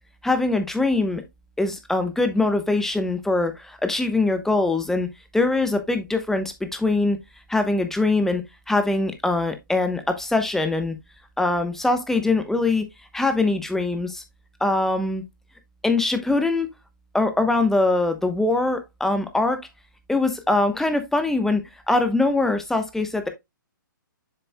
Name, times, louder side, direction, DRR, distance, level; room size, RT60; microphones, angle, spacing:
voice 1, 0.2-1.2 1.6-5.1 5.3-7.2 7.5-11.0 11.4-12.8 13.1-14.2 14.6-15.2 15.8-16.7 17.1-19.6 20.1-23.3, left 2 dB, 5° left, 1.0 m, -22 dB
7.3 x 6.7 x 2.2 m
hypercardioid pair, 130°, 11 cm